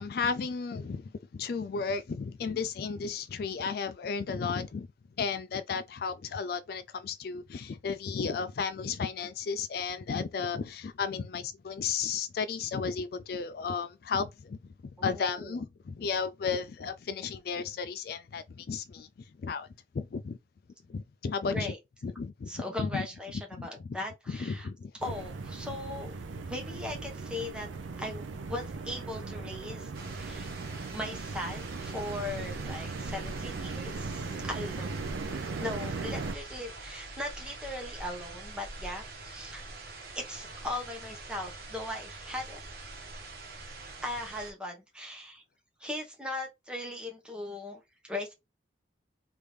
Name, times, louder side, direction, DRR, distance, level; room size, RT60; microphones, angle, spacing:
voice 1, 0.0-4.9 5.2-19.7 19.9-20.4 20.9-21.7 22.0-23.1 23.5-24.0 24.3-24.9, left 5 dB, 55° left, 0.3 m, -34 dB
voice 2, 15.0-15.6 21.5-21.8 22.5-24.7 25.0-26.1 26.5-27.7 28.0-30.5 30.9-35.3 35.6-39.7 40.1-42.6 44.0-45.4 45.8-48.3, left 1 dB, 5° right, 0.9 m, -39 dB
sound 1, 25.0-36.4, right 4 dB, 80° right, 0.5 m, -38 dB
sound 2, 29.9-44.5, right 2 dB, 55° right, 1.1 m, -44 dB
3.4 x 2.6 x 3.2 m
head